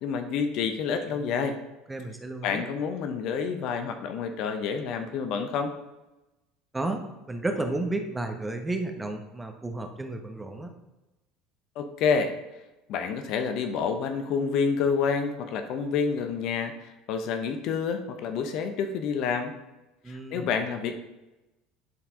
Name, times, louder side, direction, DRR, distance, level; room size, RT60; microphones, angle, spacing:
voice 1, 0.0-1.6 2.4-5.7 11.8-12.4 12.9-19.5 20.1-21.0, left 6 dB, 60° left, 7 dB, 0.8 m, -28 dB
voice 2, 1.9-2.6 6.7-7.0 7.3-10.7 20.0-20.5, right 2 dB, 15° right, 4 dB, 1.2 m, -32 dB
10.5 x 4.7 x 3.7 m, 1.0 s
hypercardioid pair, 70°, 0 cm